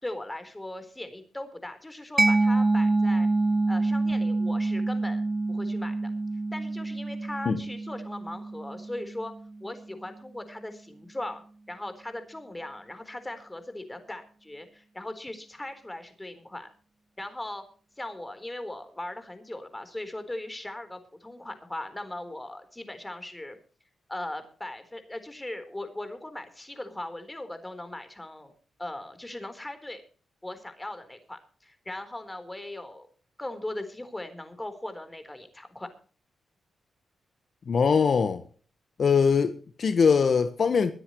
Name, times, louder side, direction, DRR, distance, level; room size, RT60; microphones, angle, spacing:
voice 1, 0.0-3.3 3.7-5.2 5.5-6.1 6.5-9.3 9.6-11.4 11.7-16.7 17.2-17.6 18.0-23.6 24.1-28.5 28.8-30.0 30.4-33.1 33.4-35.9, left 1 dB, 15° left, 4.1 m, -39 dB
Mallet percussion, 2.2-9.6, right 2 dB, 20° right, 0.5 m, -26 dB
voice 2, 37.7-38.4 39.0-40.9, left 6 dB, 60° left, 1.3 m, -22 dB
23.0 x 10.0 x 3.2 m
cardioid pair, 65°, 0 cm